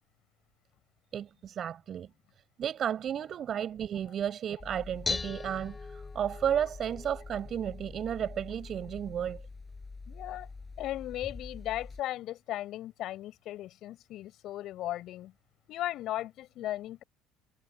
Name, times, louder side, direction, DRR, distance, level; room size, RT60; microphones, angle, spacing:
voice 1, 1.1-2.1 2.6-9.4, right 9 dB, 50° right, 7.1 m, -33 dB
Dishes pots and pans, 4.6-12.0, left 4 dB, 25° left, 5.9 m, -41 dB
voice 2, 10.1-10.5 10.8-15.3 15.7-17.0, left 14 dB, 65° left, 5.9 m, -37 dB
hypercardioid pair, 75°, 0 cm